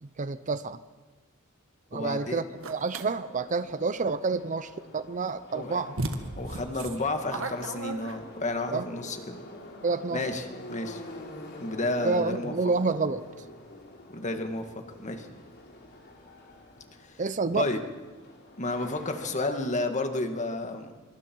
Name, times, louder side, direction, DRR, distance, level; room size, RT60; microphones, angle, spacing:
voice 1, 0.0-0.8 1.9-6.0 8.7-8.9 9.8-10.3 12.0-13.2 17.2-17.7, right 4 dB, 35° right, 13 dB, 0.6 m, -29 dB
voice 2, 1.9-2.4 5.5-5.8 6.4-9.4 10.1-10.4 10.7-11.0 11.6-12.5 14.1-14.7 15.0-15.3 17.5-17.8 18.6-20.9, left 2 dB, 35° left, 6 dB, 1.9 m, -31 dB
Subway metro underground, 2.5-19.5, left 1 dB, 50° left, 3.3 m, -47 dB
sound 1, 2.6-3.1 5.3-5.4 6.0-8.5, right 2 dB, 65° right, 1.7 m, -35 dB
25.5 x 23.5 x 4.6 m, 1.3 s
head